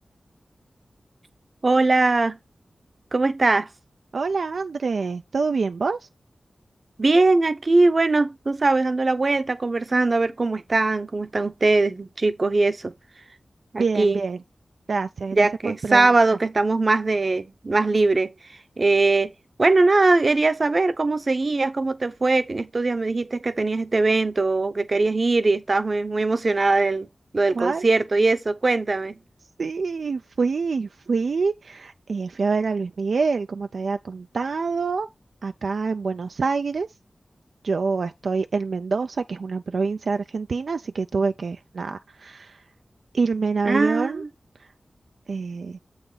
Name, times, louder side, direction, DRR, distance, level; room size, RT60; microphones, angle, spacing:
voice 1, 1.6-2.4 3.1-3.7 7.0-12.9 13.7-14.2 15.3-18.3 18.8-19.3 19.6-27.1 27.3-29.2 43.6-44.3, right 3 dB, 40° right, 0.8 m, -21 dB
voice 2, 4.1-6.0 13.8-14.4 14.9-16.4 27.5-27.8 29.6-35.1 35.4-36.9 37.6-42.6 43.1-44.2 45.3-45.8, right 4 dB, 70° right, 0.4 m, -26 dB
7.8 x 3.9 x 4.9 m
wide cardioid pair, 115°, 0 cm